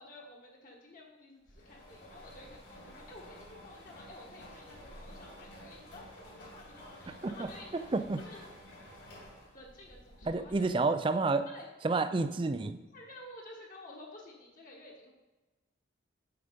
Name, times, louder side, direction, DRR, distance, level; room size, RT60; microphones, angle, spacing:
voice 1, 0.0-7.9 8.2-8.4 9.5-10.7 11.4-11.7 12.9-15.1, left 2 dB, 45° left, -2 dB, 1.4 m, -52 dB
sound 1, 1.5-10.8, equal, 65° left, 2.7 m, -51 dB
voice 2, 7.1-7.5 7.7-8.2 10.3-11.5 11.8-12.8, right 3 dB, 25° right, 10 dB, 0.3 m, -30 dB
7.9 x 5.0 x 5.2 m, 1.2 s
head